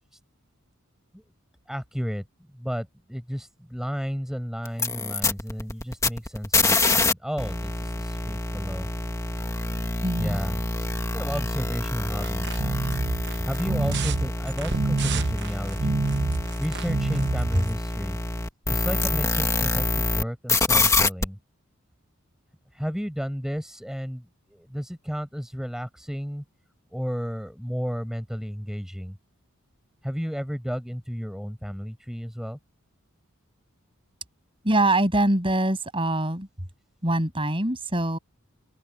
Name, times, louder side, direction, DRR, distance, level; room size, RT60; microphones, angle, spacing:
voice 1, 1.7-2.2 2.6-8.9 10.2-10.6 11.1-12.6 13.4-16.0 16.6-18.2 18.7-21.4 22.8-24.2 24.5-26.4 26.9-29.1 30.0-32.6, equal, ahead, 6.1 m, -32 dB
sound 1, 4.7-7.1 7.4-20.2 20.5-21.2, left 3 dB, 15° left, 1.8 m, -26 dB
voice 2, 10.0-10.4 17.5-17.7 34.6-36.5 37.0-38.2, right 1 dB, 25° right, 7.5 m, -23 dB
sound 2, 12.2-17.7, right 3 dB, 55° right, 0.9 m, -27 dB
open air
head